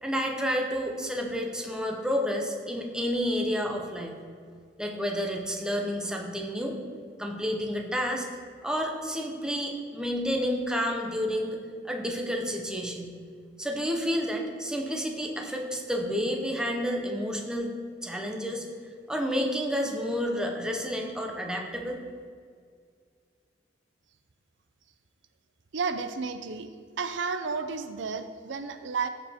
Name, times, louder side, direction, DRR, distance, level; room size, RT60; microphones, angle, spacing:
voice 1, 0.0-4.1 4.8-6.8 7.2-8.3 8.6-11.6 11.8-13.1 13.6-17.7 18.0-18.6 19.1-22.0, equal, 5° right, 1 dB, 0.9 m, -30 dB
voice 2, 25.7-26.7 27.0-29.1, right 5 dB, 75° right, 9 dB, 0.5 m, -32 dB
14.5 x 5.0 x 3.6 m, 2.1 s
head